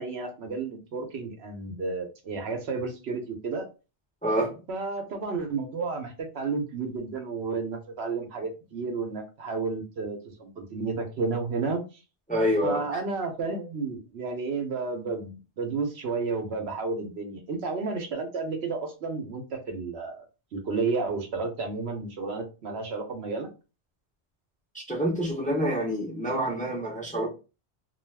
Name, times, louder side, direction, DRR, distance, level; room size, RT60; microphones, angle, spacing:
voice 1, 0.0-3.6 4.7-11.8 12.6-20.2 20.5-23.5, right 4 dB, 70° right, 0.9 m, -32 dB
voice 2, 4.2-4.5 12.3-12.8 24.7-27.3, equal, 10° left, 0.7 m, -27 dB
2.4 x 2.3 x 3.2 m
omnidirectional pair, 1.2 m